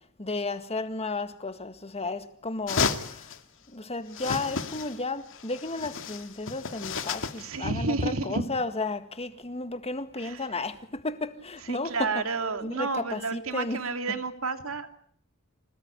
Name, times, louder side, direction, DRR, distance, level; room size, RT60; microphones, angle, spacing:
voice 1, 0.2-3.2 3.7-12.2 12.6-13.8, left 3 dB, 30° left, 1.9 m, -33 dB
sound 1, 2.7-3.4 4.1-5.0 5.3-7.5, left 5 dB, 65° left, 2.2 m, -32 dB
voice 2, 7.4-8.4 10.2-10.4 11.7-15.0, right 3 dB, 70° right, 2.5 m, -30 dB
26.5 x 18.0 x 9.8 m
head